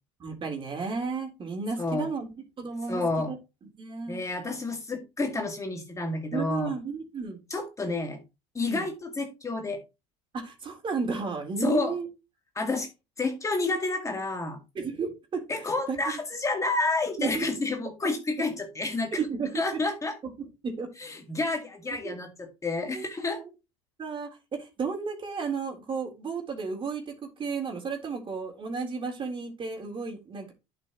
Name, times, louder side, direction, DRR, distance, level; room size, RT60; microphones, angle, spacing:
voice 1, 0.2-2.3 2.6-3.4 3.8-4.2 6.3-7.4 8.7-8.9 10.3-12.1 14.8-15.4 15.9-16.0 17.2-17.5 19.2-19.6 20.4-20.9 22.0-22.1 22.9-23.0 23.4-23.5 24.0-27.1 27.4-30.5, right 5 dB, 35° right, 3 dB, 3.7 m, -33 dB
voice 2, 1.8-2.1 2.9-3.3 4.1-6.7 7.5-8.2 8.5-9.8 11.6-11.9 12.6-12.9 13.2-14.6 15.5-19.2 19.5-20.2 21.0-23.4, left 3 dB, 20° left, 3 dB, 2.1 m, -29 dB
11.0 x 6.0 x 3.1 m, 0.26 s
hypercardioid pair, 90°, 15 cm